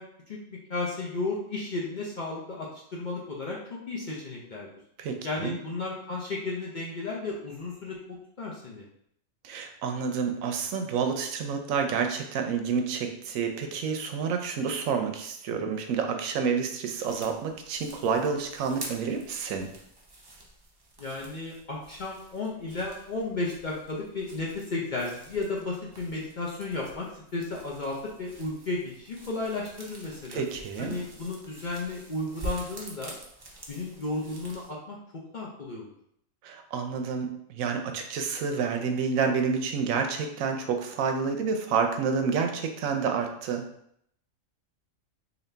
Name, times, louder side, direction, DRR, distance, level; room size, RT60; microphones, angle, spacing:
voice 1, 0.0-4.7 5.2-8.8 21.0-30.4 30.8-33.1 33.7-35.0 35.3-35.9, left 2 dB, 50° left, -3 dB, 0.6 m, -34 dB
voice 2, 5.0-5.6 9.4-19.7 30.3-31.0 36.4-43.7, right 5 dB, 85° right, 5 dB, 1.0 m, -29 dB
sound 1, 17.0-34.7, right 1 dB, 30° right, 0.4 m, -46 dB
3.9 x 2.7 x 3.3 m, 0.71 s
omnidirectional pair, 1.4 m